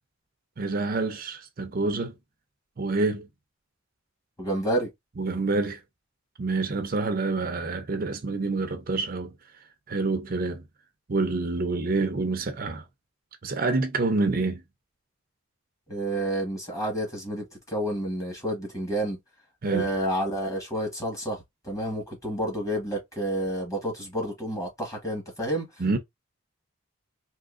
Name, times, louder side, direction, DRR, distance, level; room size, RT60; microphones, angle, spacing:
voice 1, 0.6-2.1 2.8-3.3 5.2-5.8 6.4-9.3 9.9-10.6 11.1-12.8 13.4-14.6 19.6-19.9 25.8-26.0, right 3 dB, 45° right, 0.5 m, -27 dB
voice 2, 4.4-4.9 15.9-19.2 19.7-25.7, right 1 dB, 15° left, 1.4 m, -29 dB
3.7 x 2.8 x 2.4 m
head